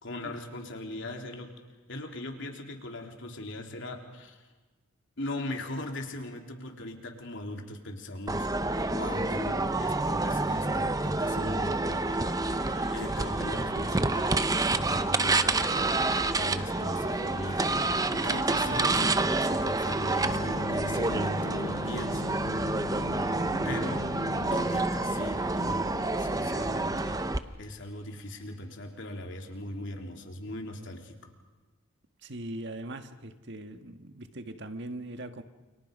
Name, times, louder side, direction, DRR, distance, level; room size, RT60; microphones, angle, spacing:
voice 1, 0.0-1.5 1.9-4.5 5.2-8.5 8.9-12.3 12.9-22.8 23.6-24.0 24.5-27.2 27.6-31.3, left 1 dB, 60° left, 3.5 m, -39 dB
sound 1, 8.3-27.4, right 2 dB, 15° right, 0.8 m, -28 dB
sound 2, 11.7-29.7, left 3 dB, 30° left, 6.0 m, -54 dB
sound 3, 20.2-27.2, left 3 dB, 85° left, 1.8 m, -40 dB
voice 2, 32.2-35.4, right 1 dB, 55° right, 1.6 m, -40 dB
29.0 x 29.0 x 5.4 m
head